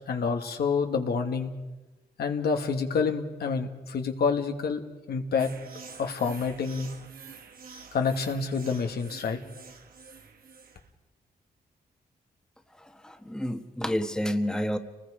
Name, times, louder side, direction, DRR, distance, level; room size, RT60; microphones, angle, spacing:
voice 1, 0.1-1.5 2.2-4.8 5.1-5.5 6.0-6.9 7.9-9.4, left 5 dB, 75° left, 5 dB, 1.9 m, -28 dB
sound 1, 5.4-10.9, right 5 dB, 65° right, 1.9 m, -47 dB
voice 2, 12.8-14.8, equal, 5° left, 6 dB, 1.5 m, -30 dB
29.5 x 20.0 x 5.1 m, 1.1 s
cardioid pair, 85°, 16 cm